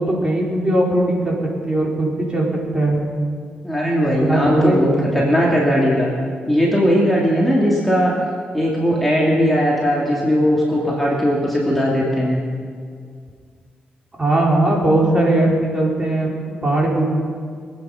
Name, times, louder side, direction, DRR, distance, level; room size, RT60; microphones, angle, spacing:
voice 1, 0.0-1.3 1.6-3.0 4.2-5.1 14.2-17.1, right 1 dB, 25° right, -3 dB, 4.7 m, -19 dB
voice 2, 3.6-6.1 6.5-8.1 8.5-12.4, equal, 5° left, -5 dB, 2.8 m, -18 dB
24.5 x 9.4 x 5.9 m, 2.1 s
cardioid pair, 90°, 3 cm